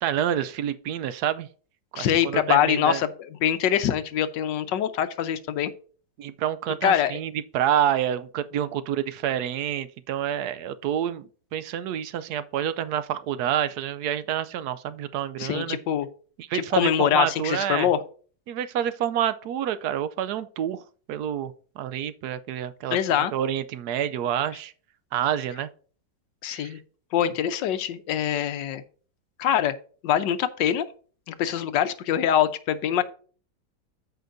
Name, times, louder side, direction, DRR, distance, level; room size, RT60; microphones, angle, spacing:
voice 1, 0.0-1.5 1.9-3.0 6.2-15.8 16.4-17.9 18.5-24.7 25.1-25.7 26.5-26.8, right 10 dB, 70° right, 1.0 m, -28 dB
voice 2, 1.9-3.1 3.4-5.7 6.8-7.2 15.4-16.1 16.5-18.0 22.9-23.3 26.4-26.8 27.1-28.8 29.4-29.7 30.0-30.9 31.3-33.0, left 10 dB, 80° left, 1.3 m, -24 dB
14.0 x 5.2 x 2.6 m
omnidirectional pair, 2.0 m